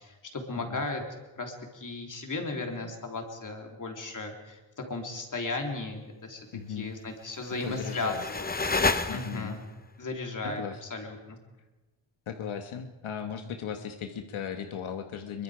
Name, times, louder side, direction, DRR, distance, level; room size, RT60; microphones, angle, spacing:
voice 1, 0.3-1.0 1.4-8.5 9.1-9.6 10.0-11.4, left 3 dB, 40° left, 2 dB, 3.4 m, -35 dB
voice 2, 6.5-7.0 7.6-8.2 9.1-9.6 10.4-10.8 12.3-15.4, left 7 dB, 85° left, 6 dB, 1.4 m, -37 dB
sound 1, 7.3-9.7, left 3 dB, 20° left, 0.9 m, -30 dB
25.0 x 23.0 x 5.1 m, 1.1 s
wide cardioid pair, 155°, 48 cm